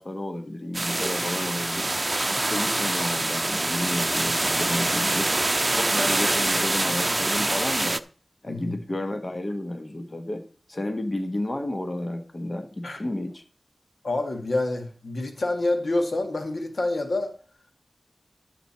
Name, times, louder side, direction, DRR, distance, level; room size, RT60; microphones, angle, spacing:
voice 1, 0.0-1.9 2.3-5.3 5.7-8.0 8.4-13.4, left 1 dB, 45° left, 6 dB, 1.6 m, -32 dB
sound 1, 0.7-8.0, right 2 dB, 40° right, 0.6 m, -25 dB
voice 2, 8.5-8.8 12.8-13.0 14.0-17.3, left 2 dB, 80° left, 5 dB, 1.8 m, -27 dB
11.0 x 8.0 x 4.3 m, 0.40 s
cardioid pair, 45°, 0 cm